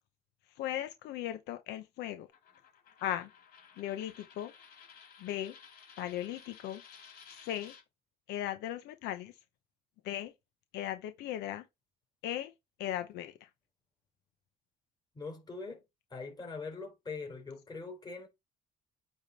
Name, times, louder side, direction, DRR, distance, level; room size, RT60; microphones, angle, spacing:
voice 1, 0.6-2.3 3.0-3.3 3.8-4.5 5.2-5.6 6.0-6.8 7.4-7.7 8.3-9.3 10.0-10.3 10.7-11.6 12.2-12.5 12.8-13.5, left 12 dB, 85° left, 0.8 m, -37 dB
Coin (dropping), 2.3-7.8, left 6 dB, 65° left, 3.5 m, -56 dB
voice 2, 15.1-15.8 16.1-18.3, left 4 dB, 25° left, 3.9 m, -42 dB
8.8 x 3.7 x 4.1 m
cardioid pair, 110°, 17 cm